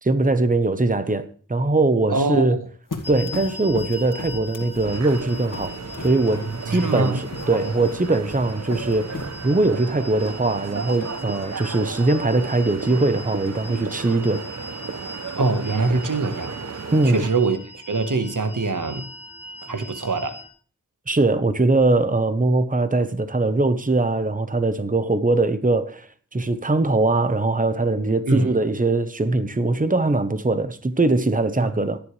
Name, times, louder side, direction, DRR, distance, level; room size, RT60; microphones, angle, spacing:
voice 1, 0.0-2.6 3.1-5.8 6.0-14.4 16.9-17.2 21.1-32.0, right 2 dB, 25° right, 1.0 m, -21 dB
voice 2, 2.1-2.6 6.7-7.2 7.7-7.8 15.3-16.6 17.0-19.0 19.6-20.4 28.3-28.5 31.6-31.7, right 3 dB, 75° right, 1.4 m, -24 dB
sound 1, 2.9-9.7, left 3 dB, 85° left, 1.8 m, -38 dB
sound 2, 3.0-20.5, left 1 dB, 5° right, 3.6 m, -41 dB
sound 3, 4.8-17.3, right 5 dB, 55° right, 0.7 m, -33 dB
16.0 x 10.5 x 3.3 m
wide cardioid pair, 50°, 31 cm